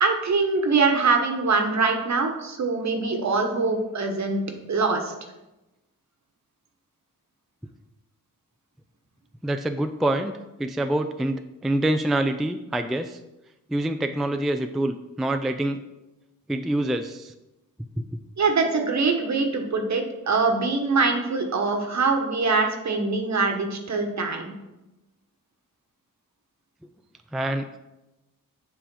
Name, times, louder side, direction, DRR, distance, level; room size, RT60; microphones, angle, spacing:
voice 1, 0.0-4.4 4.7-5.1 18.4-24.6, right 4 dB, 55° right, 4 dB, 1.2 m, -23 dB
voice 2, 9.4-10.3 10.6-13.2 13.7-15.8 16.5-17.3 18.0-18.1 27.3-27.8, right 1 dB, ahead, 8 dB, 0.3 m, -26 dB
7.3 x 3.5 x 5.3 m, 0.99 s
cardioid pair, 55°, 34 cm